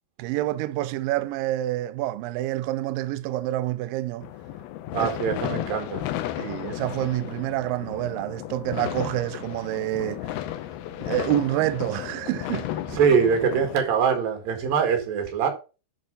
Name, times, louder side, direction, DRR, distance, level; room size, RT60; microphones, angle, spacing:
voice 1, 0.2-4.3 5.0-5.1 6.4-10.2 11.0-12.7, right 15 dB, 85° right, 2.0 m, -27 dB
sound 1, 4.2-13.8, left 13 dB, 80° left, 2.6 m, -34 dB
voice 2, 4.9-6.0 13.0-15.5, right 6 dB, 65° right, 3.6 m, -23 dB
10.5 x 4.3 x 5.3 m
omnidirectional pair, 4.5 m